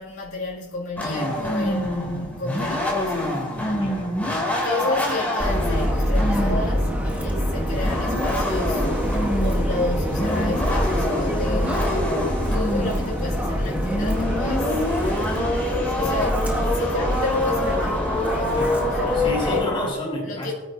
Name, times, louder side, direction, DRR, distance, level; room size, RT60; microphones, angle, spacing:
voice 1, 0.0-3.7 4.6-8.9 9.3-12.2 12.5-15.3 15.7-19.7 20.2-20.5, left 2 dB, 85° left, 2.3 m, -32 dB
sound 1, 1.0-19.9, left 1 dB, 10° left, 2.7 m, -26 dB
voice 2, 3.8-4.3 18.5-18.7 19.1-20.5, left 1 dB, 25° left, 4.4 m, -30 dB
Subway metro underground, 5.4-19.6, equal, 5° right, 1.1 m, -25 dB
24.0 x 8.9 x 2.7 m
head